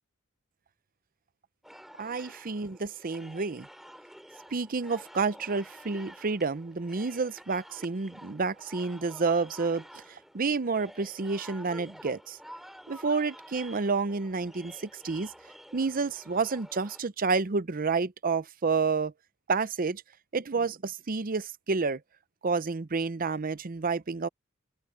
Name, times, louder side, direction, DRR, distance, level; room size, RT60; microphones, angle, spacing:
sound 1, 1.6-17.0, equal, ahead, 7.0 m, -50 dB
voice 1, 2.0-3.7 4.5-12.4 12.9-15.3 15.7-19.1 19.5-20.0 20.3-22.0 22.4-24.3, right 4 dB, 40° right, 0.6 m, -29 dB
open air
head